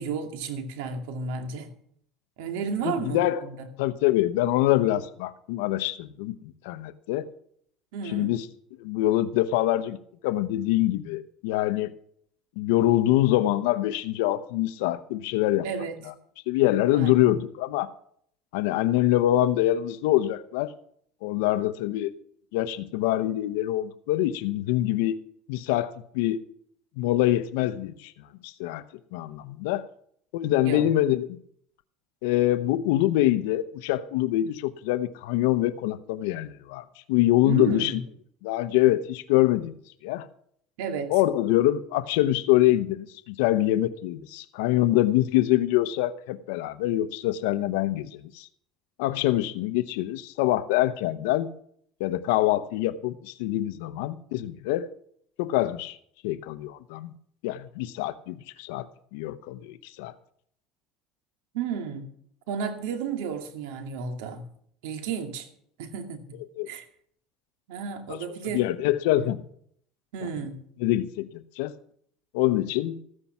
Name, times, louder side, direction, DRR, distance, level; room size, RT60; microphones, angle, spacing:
voice 1, 0.0-1.7 2.4-3.6 7.9-8.3 15.6-16.0 16.9-17.4 30.6-30.9 37.5-38.0 40.8-41.1 61.5-62.1 62.5-64.4 64.8-65.5 65.8-66.4 66.7-66.9 67.7-68.6 69.2-69.3 70.1-70.6, right 6 dB, 85° right, 5 dB, 2.4 m, -32 dB
voice 2, 2.8-3.4 3.8-7.2 8.1-8.4 8.8-10.0 10.2-11.9 12.6-15.7 16.5-17.9 18.5-20.7 21.2-22.1 22.5-25.2 25.5-26.4 27.0-28.1 28.4-28.8 29.1-29.9 30.3-31.4 32.2-38.0 38.4-39.7 40.0-40.3 41.1-48.5 49.0-51.5 52.0-54.9 55.4-56.0 56.2-57.1 57.4-58.9 59.1-60.1 66.6-66.7 68.1-68.2 68.5-69.4 70.8-71.7 72.3-73.0, left 14 dB, 85° left, 12 dB, 0.8 m, -25 dB
14.5 x 9.8 x 5.9 m, 0.64 s
cardioid pair, 140°, 0 cm